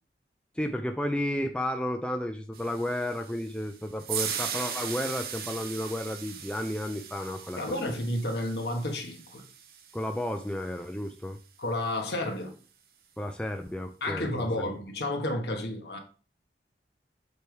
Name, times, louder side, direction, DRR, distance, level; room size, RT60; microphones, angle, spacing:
voice 1, 0.6-7.9 9.9-11.4 13.2-14.7, left 1 dB, 5° left, 0.4 m, -32 dB
sound 1, 2.5-10.8, right 7 dB, 55° right, 0.8 m, -39 dB
voice 2, 7.6-9.4 11.6-12.5 14.0-16.0, left 1 dB, 75° left, 1.3 m, -31 dB
6.9 x 3.4 x 4.6 m
head